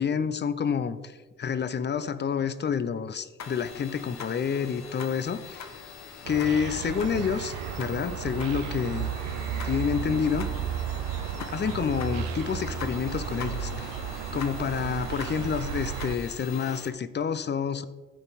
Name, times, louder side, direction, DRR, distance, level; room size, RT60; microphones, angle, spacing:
voice 1, 0.0-5.7 6.3-9.1 9.6-10.5 11.4-14.0 14.3-17.9, left 7 dB, 35° left, 15 dB, 0.6 m, -28 dB
sound 1, 3.4-16.9, left 6 dB, 60° left, 1.0 m, -43 dB
sound 2, 6.2-16.2, right 8 dB, 90° right, 0.6 m, -33 dB
13.0 x 4.4 x 4.1 m, 1.3 s
supercardioid pair, 60°, 32 cm